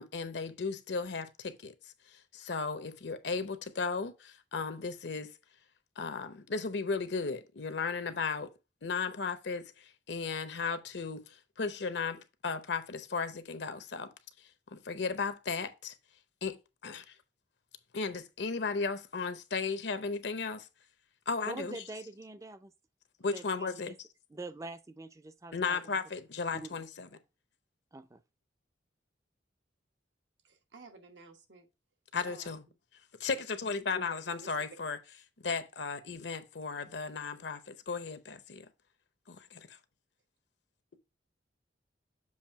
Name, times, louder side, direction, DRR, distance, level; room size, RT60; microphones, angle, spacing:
voice 1, 0.0-1.7 2.1-5.3 6.0-8.5 8.8-14.1 14.7-15.9 16.4-17.1 17.9-20.7 21.3-21.8 23.2-24.1 25.5-27.1 32.1-32.6 33.2-35.0 35.4-38.7 39.3-39.7, left 4 dB, 70° left, 0.7 m, -35 dB
voice 2, 21.5-22.7 23.3-24.0 24.3-25.8 26.5-26.7 27.9-28.2, right 2 dB, 15° right, 0.4 m, -44 dB
voice 3, 30.4-31.7 32.2-32.6 34.3-34.6, right 3 dB, 80° right, 1.2 m, -54 dB
7.2 x 2.7 x 5.6 m
head